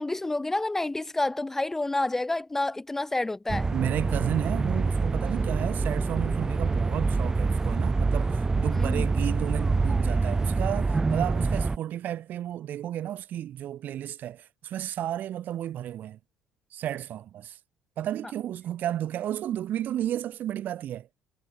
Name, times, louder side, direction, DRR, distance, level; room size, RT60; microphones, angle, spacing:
voice 1, 0.0-3.7 8.7-9.1, left 2 dB, 10° left, 0.4 m, -29 dB
sound 1, 3.5-11.8, right 3 dB, 15° right, 0.8 m, -26 dB
voice 2, 3.7-16.2 16.7-17.6 18.0-21.1, right 11 dB, 55° right, 2.4 m, -32 dB
cardioid pair, 140°, 4 cm